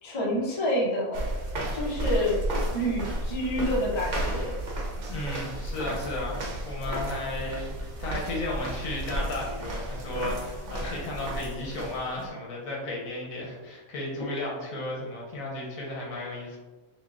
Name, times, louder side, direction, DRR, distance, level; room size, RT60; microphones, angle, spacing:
voice 1, 0.0-1.4 1.7-2.4 2.7-4.5 10.8-10.9 14.2-14.4, equal, 30° left, -4 dB, 0.6 m, -28 dB
sound 1, 1.1-12.3, right 1 dB, 60° right, 1.0 m, -33 dB
voice 2, 5.1-16.6, left 1 dB, 75° left, -3 dB, 1.3 m, -34 dB
5.5 x 2.2 x 2.4 m, 1.2 s
omnidirectional pair, 1.5 m